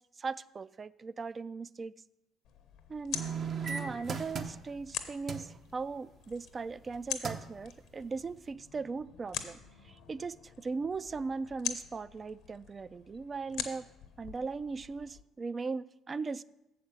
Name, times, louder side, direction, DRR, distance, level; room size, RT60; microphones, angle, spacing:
voice 1, 0.0-1.9 2.9-3.3 3.7-9.6 9.8-13.9 14.2-16.4, right 4 dB, 35° right, 0.3 m, -38 dB
sound 1, 2.4-15.2, left 9 dB, 70° left, 0.7 m, -44 dB
sound 2, 3.1-4.9 5.3-5.5 6.8-6.9 7.2-7.6 8.1-8.2, right 6 dB, 55° right, 0.8 m, -36 dB
7.2 x 5.0 x 7.0 m
hypercardioid pair, 55°, 0 cm